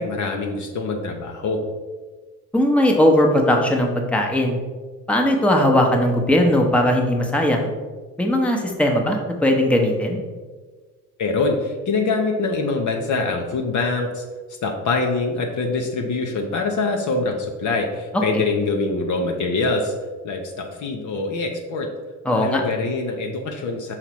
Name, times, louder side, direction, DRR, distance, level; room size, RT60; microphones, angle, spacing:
voice 1, 0.0-1.6 11.2-14.2 14.6-19.9 20.2-21.9 22.3-23.9, left 3 dB, 40° left, 2 dB, 0.8 m, -24 dB
voice 2, 2.5-4.6 5.1-7.7 8.2-10.2 22.2-22.6, left 1 dB, 5° left, 1 dB, 0.9 m, -18 dB
5.8 x 3.9 x 4.6 m, 1.4 s
figure-of-eight pair, 50°, 45 cm